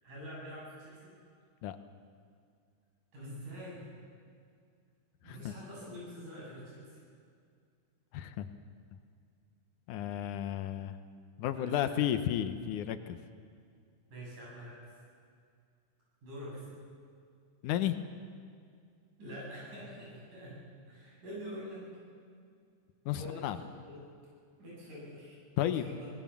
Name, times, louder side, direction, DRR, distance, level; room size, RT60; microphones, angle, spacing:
voice 1, 0.0-1.1 3.1-3.9 5.2-7.0 11.6-12.0 14.1-14.9 16.2-16.7 19.2-20.6 20.9-21.8 23.1-24.0 24.6-26.1, equal, 75° right, -5 dB, 9.7 m, -45 dB
voice 2, 8.1-8.5 9.9-11.0 11.4-13.2 17.6-18.0 23.1-23.6 25.6-25.8, left 11 dB, 80° left, 10 dB, 2.4 m, -32 dB
23.5 x 18.5 x 7.3 m, 2.2 s
omnidirectional pair, 3.6 m